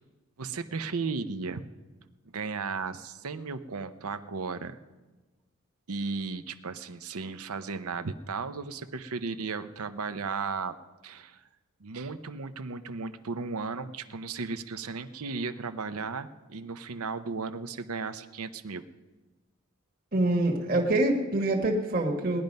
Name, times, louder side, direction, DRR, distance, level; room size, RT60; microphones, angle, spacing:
voice 1, 0.4-1.7 2.3-4.8 5.9-10.8 11.0-11.4 11.8-18.8, right 4 dB, 85° right, 11 dB, 0.7 m, -35 dB
voice 2, 20.1-22.4, right 1 dB, 40° right, 0 dB, 1.6 m, -25 dB
18.5 x 10.5 x 5.4 m, 1.2 s
head